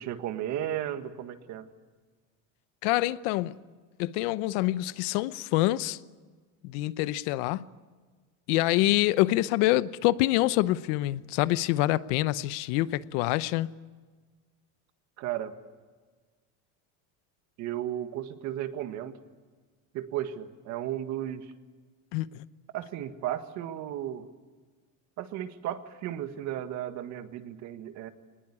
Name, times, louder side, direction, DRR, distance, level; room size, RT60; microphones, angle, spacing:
voice 1, 0.0-1.7 15.2-15.5 17.6-19.1 19.9-21.5 22.7-24.3 25.2-28.1, right 11 dB, 50° right, 1.8 m, -34 dB
voice 2, 2.8-3.6 4.0-6.0 6.6-7.6 8.5-13.7 22.1-22.4, left 17 dB, 70° left, 0.9 m, -26 dB
23.0 x 20.0 x 9.8 m
cardioid pair, 160°, 36 cm